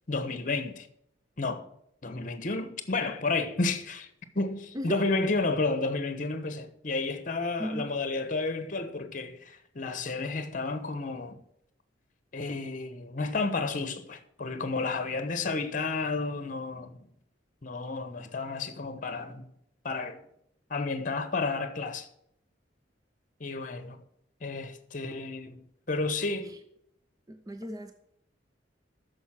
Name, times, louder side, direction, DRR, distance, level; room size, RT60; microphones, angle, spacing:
voice 1, 0.1-0.9 1.4-1.7 2.0-4.1 4.3-11.4 12.3-17.1 17.6-19.4 19.8-20.2 20.7-22.1 23.4-24.0 24.4-25.6 25.9-26.5, left 3 dB, 45° left, 1.0 m, -31 dB
voice 2, 4.7-5.1 7.6-7.9 26.4-26.6 27.3-27.9, right 1 dB, 20° right, 0.6 m, -36 dB
9.1 x 6.7 x 7.5 m
head